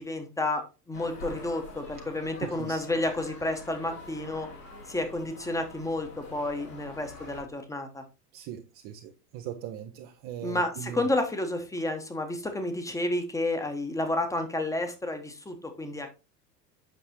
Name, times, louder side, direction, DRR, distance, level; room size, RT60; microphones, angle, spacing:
voice 1, 0.0-4.5 4.9-8.0 10.4-16.1, left 1 dB, 5° left, 0.9 m, -31 dB
sound 1, 0.9-7.4, left 2 dB, 75° left, 2.9 m, -45 dB
voice 2, 2.4-2.8 8.3-11.0, right 10 dB, 30° right, 0.5 m, -39 dB
8.1 x 5.9 x 2.9 m
figure-of-eight pair, 80°, 49 cm